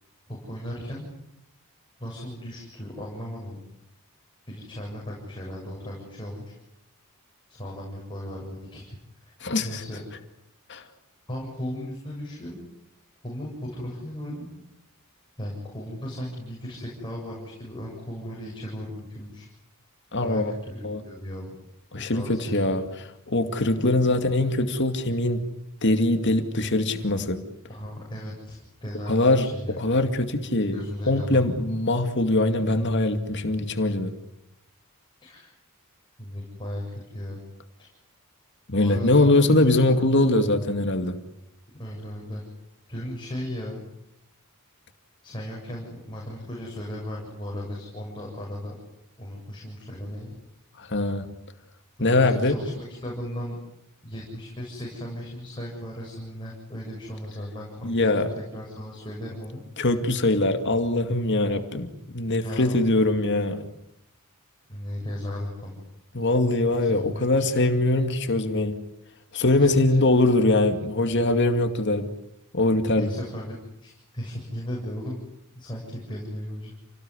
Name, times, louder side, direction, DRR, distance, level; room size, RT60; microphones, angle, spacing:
voice 1, 0.3-1.1 2.0-3.6 4.5-6.5 7.5-9.0 9.6-10.0 11.3-12.6 13.2-14.5 15.4-19.5 20.2-21.6 22.0-22.5 27.7-29.8 30.4-31.6 35.2-35.5 36.2-37.4 37.8-37.9 38.8-39.6 41.8-42.4 42.9-43.8 45.2-48.7 49.2-50.4 52.0-53.6 54.0-59.6 62.4-62.8 64.7-65.8 66.7-67.0 67.3-67.6 69.6-70.0 73.0-73.5 73.8-75.2 75.6-76.7, equal, 20° left, -3 dB, 7.5 m, -36 dB
voice 2, 9.4-9.8 10.7-10.8 20.1-20.5 20.8-21.0 21.9-25.4 25.8-27.4 29.1-29.5 29.8-30.8 31.1-34.1 38.7-41.2 50.8-51.4 52.0-52.6 57.8-58.3 59.8-63.7 66.1-68.8 69.3-72.1 72.5-73.1, left 2 dB, 55° left, 6 dB, 2.3 m, -22 dB
29.0 x 19.0 x 9.9 m, 0.82 s
head